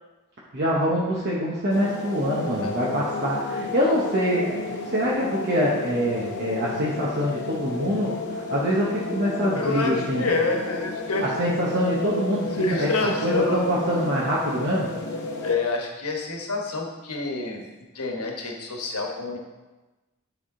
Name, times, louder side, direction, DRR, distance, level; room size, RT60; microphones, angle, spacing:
voice 1, 0.5-8.2 8.5-10.3 11.2-12.9 13.2-15.0, equal, 50° right, -5 dB, 0.9 m, -25 dB
sound 1, 1.7-15.6, left 2 dB, 50° left, 0.8 m, -32 dB
voice 2, 9.5-11.3 12.6-13.6 15.4-17.6 17.9-19.4, left 3 dB, 80° left, 1 dB, 1.1 m, -27 dB
9.8 x 3.5 x 3.7 m, 1.1 s
head